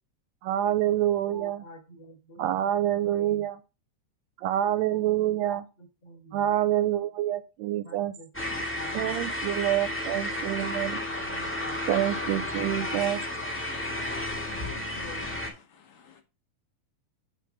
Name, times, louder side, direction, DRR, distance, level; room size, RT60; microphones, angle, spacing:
voice 1, 0.4-1.6 2.4-3.6 4.4-5.6 6.3-8.1 8.9-11.0 11.9-13.2, right 12 dB, 80° right, 1.7 m, -27 dB
voice 2, 1.2-2.4 2.8-3.5 4.9-6.5 7.8-9.1 10.8-11.8 12.1-13.1 14.3-15.4, equal, 50° left, 3.2 m, -47 dB
sound 1, 8.3-15.5, left 1 dB, 15° left, 0.4 m, -32 dB
voice 3, 13.4-15.1 15.7-16.2, left 7 dB, 75° left, 2.5 m, -50 dB
7.0 x 3.6 x 6.3 m
omnidirectional pair, 3.3 m